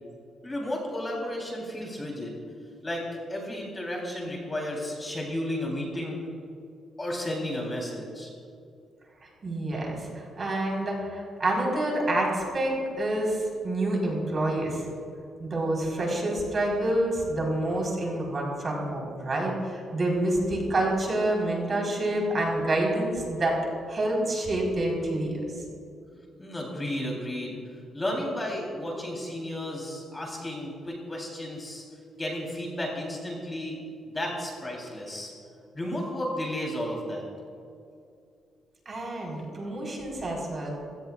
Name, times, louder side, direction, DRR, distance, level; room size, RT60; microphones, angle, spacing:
voice 1, 0.4-2.4 2.8-3.0 3.3-6.2 7.0-8.3 26.1-31.8 32.2-33.8 34.1-35.3 35.7-37.2, left 1 dB, 15° left, -2 dB, 3.5 m, -33 dB
voice 2, 9.4-14.8 15.4-23.6 23.9-25.4 38.9-40.8, right 1 dB, 30° right, -2 dB, 4.2 m, -28 dB
27.0 x 17.0 x 2.4 m, 2.4 s
cardioid pair, 155°, 0 cm